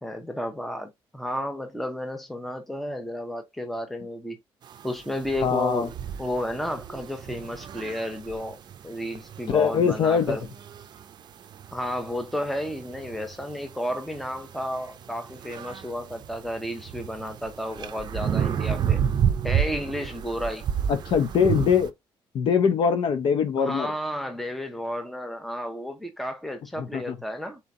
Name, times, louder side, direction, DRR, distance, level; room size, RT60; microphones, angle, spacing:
voice 1, 0.0-4.4 4.8-5.9 6.2-8.6 8.8-10.4 11.7-19.0 19.4-20.7 23.6-27.6, equal, ahead, 0.9 m, -32 dB
sound 1, 4.6-21.9, right 8 dB, 50° right, 0.5 m, -31 dB
voice 2, 5.4-5.9 9.5-10.4 20.9-21.9 22.3-23.9 26.8-27.2, left 6 dB, 65° left, 0.8 m, -22 dB
4.3 x 2.8 x 3.6 m
cardioid pair, 130°, 10 cm